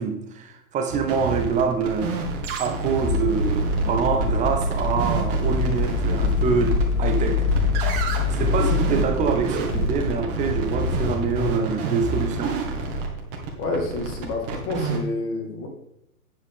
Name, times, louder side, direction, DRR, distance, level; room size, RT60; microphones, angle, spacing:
voice 1, 0.0-2.1 2.6-7.5 7.9-12.6, right 5 dB, 15° right, 1.0 m, -25 dB
sound 1, 0.9-15.0, right 3 dB, 35° right, 2.2 m, -29 dB
sound 2, 3.1-11.5, left 3 dB, 70° left, 3.1 m, -25 dB
voice 2, 13.6-15.7, left 3 dB, 30° left, 1.9 m, -29 dB
9.1 x 7.6 x 3.7 m
hypercardioid pair, 140°, 44 cm